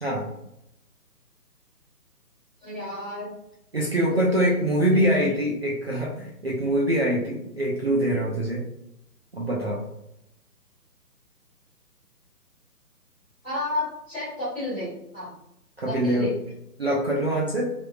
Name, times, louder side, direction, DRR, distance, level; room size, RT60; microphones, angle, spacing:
voice 1, 2.6-3.3 4.1-4.6 13.4-15.3 15.8-16.3, left 1 dB, 5° left, -17 dB, 0.9 m, -32 dB
voice 2, 3.7-8.6 9.3-9.8 15.8-16.3 16.8-17.6, right 1 dB, 40° right, -4 dB, 0.5 m, -24 dB
3.4 x 3.0 x 2.3 m, 0.81 s
hypercardioid pair, 165°, 49 cm